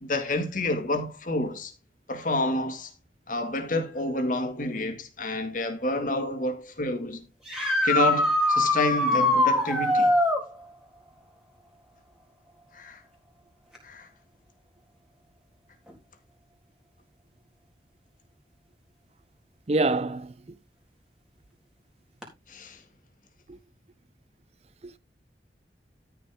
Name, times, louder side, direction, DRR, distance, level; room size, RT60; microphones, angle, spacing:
voice 1, 0.0-1.7 2.1-2.9 3.3-7.2 7.8-10.1 12.7-13.0 13.8-14.1 22.5-22.8, left 2 dB, 50° left, 2.1 m, -29 dB
sound 1, 7.5-10.4 13.8-13.9 15.9-16.0 22.2-22.3, left 1 dB, 5° right, 3.9 m, -22 dB
voice 2, 19.7-20.3 24.8-25.0, right 2 dB, 35° right, 0.5 m, -25 dB
13.5 x 6.5 x 3.6 m
head